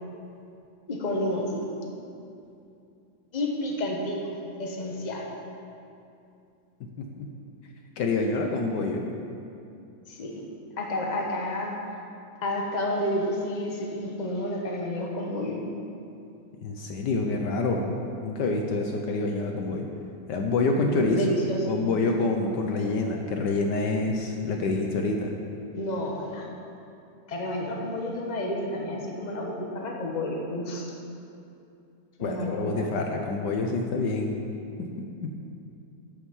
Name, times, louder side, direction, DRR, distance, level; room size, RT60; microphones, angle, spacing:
voice 1, 0.9-1.6 3.3-4.2 4.6-5.3 10.1-10.4 10.8-11.7 12.4-15.6 20.9-21.7 25.7-26.5 27.3-30.9 32.2-32.9, left 1 dB, 25° left, 0 dB, 1.3 m, -30 dB
voice 2, 7.0-7.3 8.0-9.0 16.6-17.9 18.2-19.9 20.3-21.3 21.7-25.3 32.2-34.4 35.0-35.3, left 3 dB, 70° left, 2 dB, 1.4 m, -27 dB
11.0 x 7.1 x 7.2 m, 2.6 s
omnidirectional pair, 2.1 m